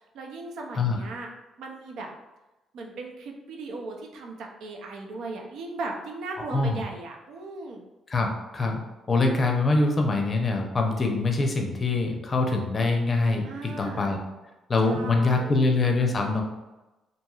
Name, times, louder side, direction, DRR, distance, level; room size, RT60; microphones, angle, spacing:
voice 1, 0.1-1.3 1.6-2.1 2.7-7.8 13.4-14.1 14.8-15.5, right 3 dB, 80° right, 1 dB, 0.4 m, -37 dB
voice 2, 8.1-8.8 9.1-14.2 14.7-16.4, left 3 dB, 35° left, 2 dB, 0.5 m, -24 dB
2.9 x 2.7 x 2.3 m, 1.0 s
cardioid pair, 90°, 0 cm